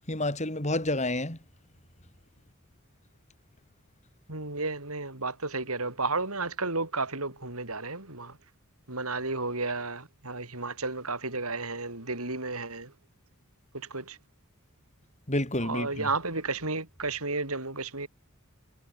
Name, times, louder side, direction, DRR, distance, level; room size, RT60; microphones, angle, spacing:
voice 1, 0.1-1.4 15.3-16.1, left 1 dB, 30° left, 6.9 m, -29 dB
voice 2, 4.3-8.4 8.9-12.9 13.7-14.2 15.6-18.1, right 3 dB, 80° right, 7.2 m, -32 dB
head